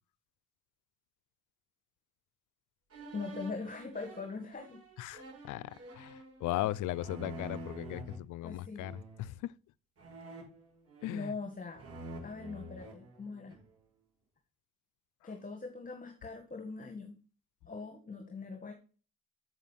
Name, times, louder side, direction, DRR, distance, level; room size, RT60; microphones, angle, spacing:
sound 1, 2.9-8.2 8.8-9.3 10.0-11.4 11.7-13.7, right 1 dB, 50° right, 6.4 m, -48 dB
voice 1, 3.1-4.8 8.4-8.9 11.1-11.8 12.2-13.6 15.2-17.1 17.6-18.7, left 4 dB, 25° left, 1.8 m, -41 dB
voice 2, 5.0-9.5 11.0-11.3, left 15 dB, 80° left, 0.5 m, -38 dB
7.7 x 7.3 x 5.8 m
cardioid pair, 90°, 30 cm